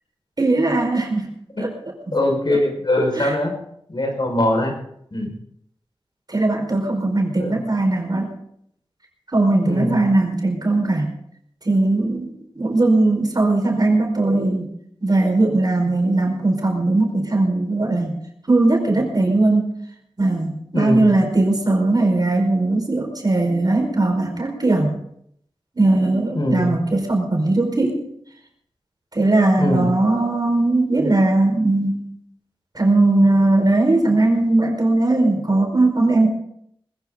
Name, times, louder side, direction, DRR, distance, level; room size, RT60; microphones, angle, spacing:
voice 1, 0.4-1.3 1.6-1.7 2.1-2.2 2.5-2.6 3.1-3.4 6.3-8.3 9.3-11.1 11.6-14.7 15.0-18.2 18.5-19.7 20.2-25.0 25.7-28.0 29.1-32.1 32.7-36.3, right 2 dB, 45° right, 2 dB, 5.0 m, -19 dB
voice 2, 2.1-3.6 3.9-4.7 5.1-5.3 7.4-7.6 9.6-10.0 20.7-21.1 26.3-26.7 29.6-29.9, left 1 dB, 50° left, 2 dB, 5.5 m, -21 dB
21.0 x 15.5 x 4.0 m, 0.71 s
wide cardioid pair, 70°, 10 cm